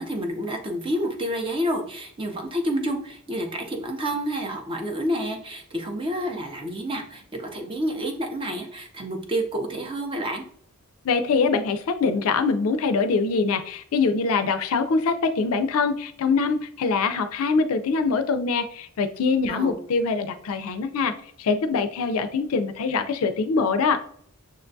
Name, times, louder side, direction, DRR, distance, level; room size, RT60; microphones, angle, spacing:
voice 1, 0.0-10.5 19.5-19.8, equal, 25° right, 3 dB, 0.5 m, -29 dB
voice 2, 11.0-21.1 21.4-24.0, left 4 dB, 70° left, 8 dB, 0.4 m, -23 dB
6.5 x 2.2 x 2.6 m, 0.62 s
head